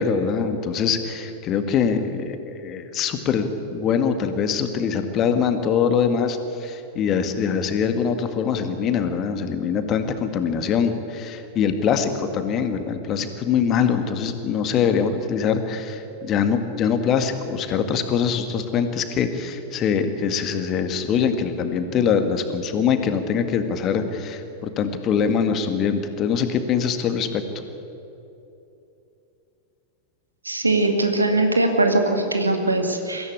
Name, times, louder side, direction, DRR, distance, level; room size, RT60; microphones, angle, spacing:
voice 1, 0.0-3.5 3.7-27.4, left 6 dB, 30° left, 8 dB, 1.9 m, -23 dB
voice 2, 30.4-33.3, right 2 dB, 80° right, 5 dB, 2.1 m, -21 dB
23.0 x 16.0 x 8.5 m, 2.8 s
figure-of-eight pair, 90°, 0 cm